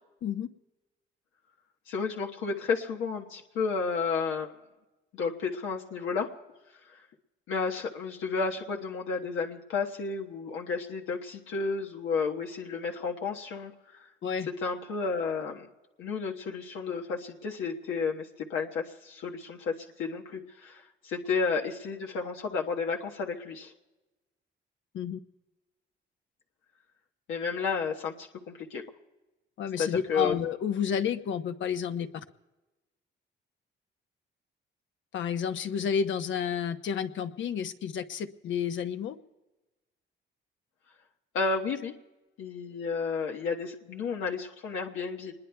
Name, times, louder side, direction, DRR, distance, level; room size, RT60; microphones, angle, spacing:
voice 1, 1.9-4.5 5.1-6.3 7.5-14.1 14.6-15.7 16.0-19.7 20.0-23.7 27.3-28.8 29.8-30.3 41.3-41.9 42.4-45.3, left 5 dB, 85° left, 0 dB, 1.3 m, -32 dB
voice 2, 29.6-32.1 35.1-39.2, left 7 dB, 70° left, 8 dB, 1.0 m, -30 dB
26.0 x 21.0 x 2.3 m, 1.1 s
cardioid pair, 90°, 20 cm